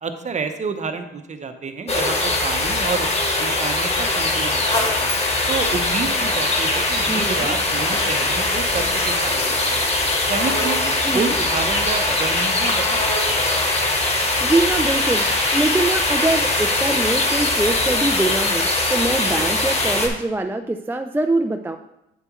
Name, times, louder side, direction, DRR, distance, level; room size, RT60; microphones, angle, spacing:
voice 1, 0.0-3.1 3.4-5.1 5.5-9.8 10.3-13.0 13.2-13.4, right 5 dB, 35° right, 8 dB, 0.9 m, -29 dB
sound 1, 1.9-20.1, left 2 dB, 30° left, 1.5 m, -21 dB
Zipper (clothing), 4.3-5.2 5.4-9.8, left 1 dB, 60° left, 2.2 m, -39 dB
voice 2, 7.0-7.5 11.1-11.3 14.4-15.3 15.5-21.8, right 2 dB, 10° right, 6 dB, 0.4 m, -23 dB
8.1 x 7.4 x 3.1 m, 0.89 s
cardioid pair, 90°, 20 cm